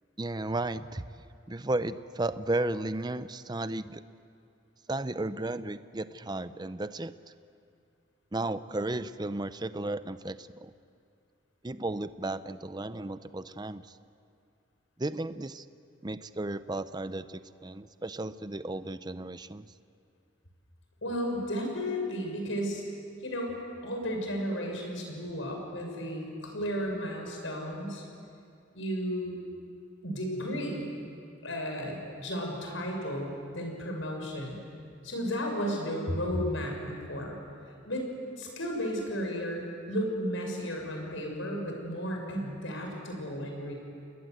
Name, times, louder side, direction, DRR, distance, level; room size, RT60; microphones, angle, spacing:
voice 1, 0.2-1.0 1.5-4.0 4.9-7.3 8.3-10.7 11.6-14.0 15.0-15.7 16.0-19.7, right 2 dB, 20° right, 13 dB, 0.6 m, -34 dB
voice 2, 21.0-22.8 23.2-23.5 23.8-28.1 28.7-29.3 30.0-30.9 31.4-34.6 35.0-37.4 37.8-38.1 38.4-43.7, equal, 80° left, 1 dB, 6.7 m, -33 dB
29.5 x 20.5 x 8.1 m, 2.5 s
head